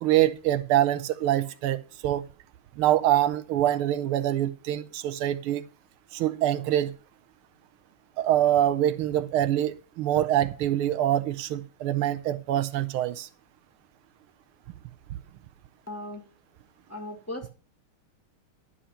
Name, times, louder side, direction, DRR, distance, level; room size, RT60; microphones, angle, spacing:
voice 1, 0.0-1.8 2.0-2.2 2.8-5.6 6.1-6.9 8.2-13.3, right 12 dB, 80° right, 1.5 m, -25 dB
voice 2, 15.9-16.2 16.9-17.5, left 1 dB, 5° left, 1.5 m, -37 dB
11.5 x 5.7 x 5.6 m
omnidirectional pair, 2.4 m